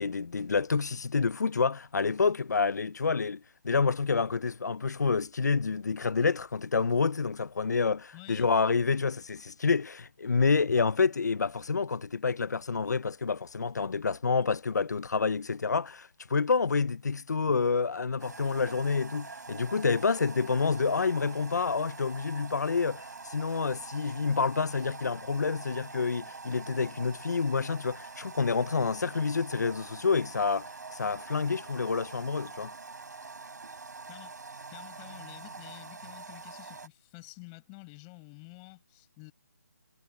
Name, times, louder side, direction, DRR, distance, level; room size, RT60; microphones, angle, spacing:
voice 1, 0.0-32.7, left 5 dB, 75° left, 0.8 m, -28 dB
voice 2, 8.1-8.5 34.1-34.4 34.7-39.3, left 35 dB, 15° left, 7.1 m, -49 dB
sound 1, 18.2-36.9, right 4 dB, 80° right, 3.8 m, -45 dB
hypercardioid pair, 165°, 9 cm